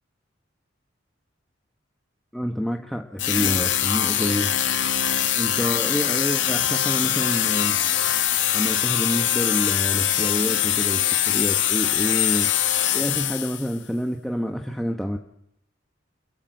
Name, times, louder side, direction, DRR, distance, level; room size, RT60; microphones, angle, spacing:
voice 1, 2.3-4.5 5.3-7.8 8.5-12.5 12.9-15.2, equal, ahead, 3 dB, 1.2 m, -28 dB
sound 1, 3.2-13.7, left 11 dB, 70° left, 3.1 m, -23 dB
27.5 x 22.5 x 7.8 m, 0.80 s
head